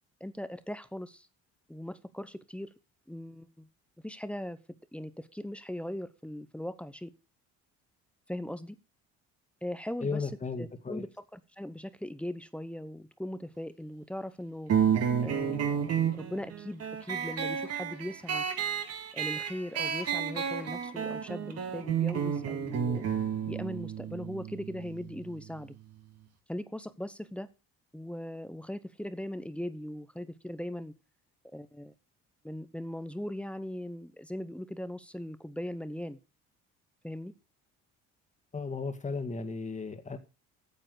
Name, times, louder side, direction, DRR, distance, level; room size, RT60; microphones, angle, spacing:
voice 1, 0.2-1.3 1.7-2.7 3.1-3.7 4.0-4.6 4.9-7.1 8.3-8.8 9.6-10.2 10.6-11.1 11.3-14.7 15.2-15.8 16.1-18.5 19.1-23.0 23.5-25.7 26.5-27.5 27.9-30.9 31.5-31.9 32.4-36.2 37.0-37.3, left 1 dB, 5° left, 13 dB, 0.9 m, -39 dB
voice 2, 10.0-11.1 38.5-40.2, left 4 dB, 25° left, 8 dB, 1.9 m, -35 dB
sound 1, 14.7-25.8, right 8 dB, 55° right, 2.1 m, -31 dB
9.4 x 7.5 x 6.2 m, 0.31 s
cardioid pair, 100°, 30 cm